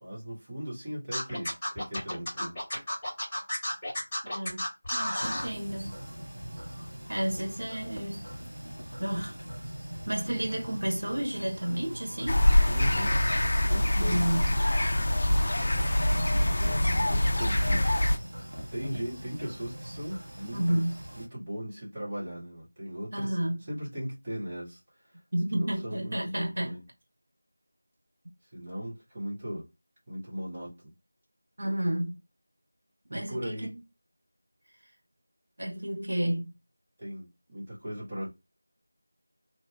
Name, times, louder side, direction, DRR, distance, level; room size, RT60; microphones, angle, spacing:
voice 1, 0.0-2.6 12.7-13.2 13.7-14.3 16.4-18.1 18.7-20.8 21.1-23.4 23.7-25.2 25.5-26.8 28.5-29.7 30.1-30.9 33.1-33.7 37.0-38.3, equal, 25° right, 1.2 m, -38 dB
Scratching (performance technique), 1.1-5.5, left 1 dB, 15° left, 1.3 m, -32 dB
voice 2, 4.2-4.6 4.9-5.9 7.1-8.3 9.0-9.4 10.1-12.4 13.9-14.5 20.5-21.0 23.1-23.6 25.3-26.7 31.6-32.2 33.1-33.7 35.6-36.5, right 1 dB, 60° right, 1.2 m, -31 dB
sound 1, 5.2-21.3, equal, 75° right, 1.1 m, -41 dB
sound 2, 12.3-18.2, left 1 dB, 50° left, 0.4 m, -24 dB
2.8 x 2.3 x 3.4 m
figure-of-eight pair, 170°, 0 cm